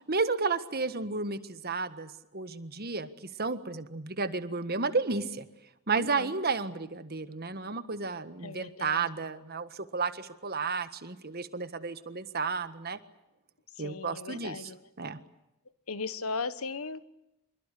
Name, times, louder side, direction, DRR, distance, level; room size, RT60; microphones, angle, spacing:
voice 1, 0.0-3.1 3.4-5.5 5.9-13.0 13.8-14.7 15.0-15.2, right 4 dB, 45° right, 12 dB, 1.6 m, -32 dB
voice 2, 6.0-6.4 8.4-9.0 13.8-14.9 15.9-17.1, left 4 dB, 75° left, 14 dB, 1.4 m, -37 dB
27.0 x 22.5 x 8.5 m, 0.88 s
head